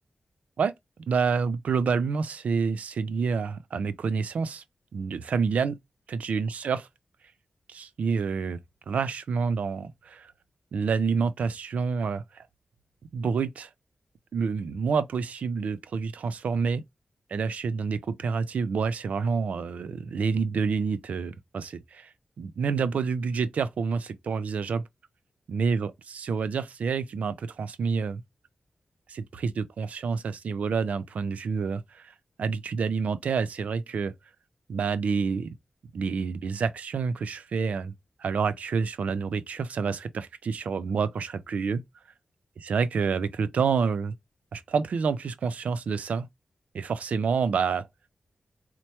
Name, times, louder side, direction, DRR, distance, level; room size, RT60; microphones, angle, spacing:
voice 1, 1.1-4.6 4.9-5.8 6.1-6.9 7.7-8.6 8.9-10.3 10.7-12.4 13.1-13.7 14.3-16.8 17.3-22.1 22.4-24.8 25.5-28.2 29.1-34.1 34.7-35.5 35.9-37.9 38.2-41.8 42.7-44.1 44.5-46.3 46.7-47.9, right 5 dB, 85° right, 0.4 m, -28 dB
4.3 x 2.2 x 2.8 m
wide cardioid pair, 125°, 2 cm